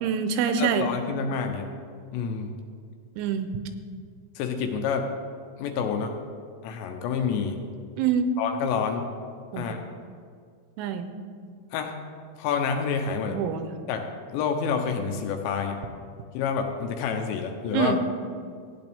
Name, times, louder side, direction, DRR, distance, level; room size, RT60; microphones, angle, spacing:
voice 1, 0.0-0.9 3.2-3.5 8.0-8.3 9.5-9.7 10.8-11.1 13.3-13.7 17.7-18.0, right 7 dB, 90° right, 8 dB, 3.1 m, -25 dB
voice 2, 0.6-1.7 2.1-2.5 4.4-5.1 5.6-6.2 6.6-7.6 8.4-9.1 9.5-9.8 11.7-12.0 12.4-13.4 13.9-14.1 14.3-15.8 16.3-18.0, left 6 dB, 80° left, 4 dB, 2.9 m, -28 dB
15.5 x 9.3 x 3.5 m, 2.2 s
omnidirectional pair, 5.5 m